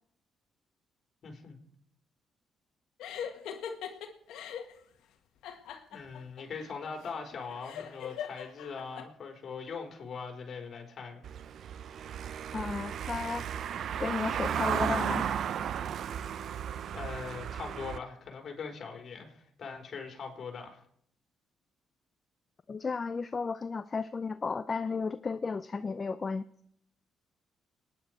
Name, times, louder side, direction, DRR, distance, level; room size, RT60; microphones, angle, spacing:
voice 1, 1.2-1.6 5.9-11.2 16.2-16.5 16.9-20.8, left 5 dB, 55° left, 3 dB, 3.9 m, -41 dB
sound 1, 3.0-4.7 5.4-9.0, left 8 dB, 85° left, 1.6 m, -41 dB
Car passing by / Engine, 11.2-18.0, right 8 dB, 65° right, 0.6 m, -34 dB
voice 2, 12.5-13.4 14.0-15.3 22.7-26.5, left 4 dB, 35° left, 12 dB, 0.5 m, -33 dB
26.5 x 10.0 x 4.6 m, 0.67 s
cardioid pair, 90°, 0 cm